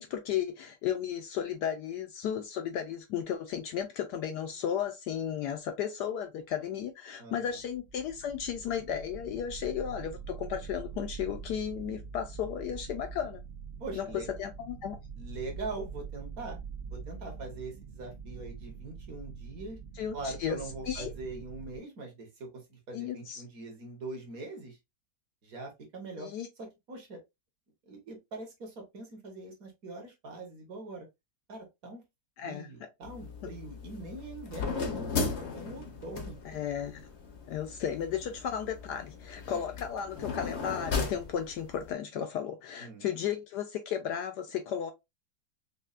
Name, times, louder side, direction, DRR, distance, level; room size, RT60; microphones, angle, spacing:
voice 1, 0.0-13.4 13.9-14.1 14.4-15.0 19.9-20.6 20.9-21.1 22.9-23.4 26.2-26.5 32.4-32.7 36.4-37.0 37.5-44.9, left 8 dB, 70° left, 1.0 m, -34 dB
voice 2, 7.2-7.6 13.8-14.3 15.2-16.6 16.9-19.8 20.1-24.8 25.4-26.3 26.6-27.2 27.9-31.1 31.5-32.0 32.4-36.4 39.4-39.6 42.8-43.0, right 2 dB, 50° right, 1.5 m, -42 dB
sound 1, 7.5-21.8, right 6 dB, 85° right, 0.6 m, -44 dB
sound 2, 33.0-41.9, left 4 dB, 55° left, 0.8 m, -37 dB
5.4 x 2.2 x 2.4 m
omnidirectional pair, 2.1 m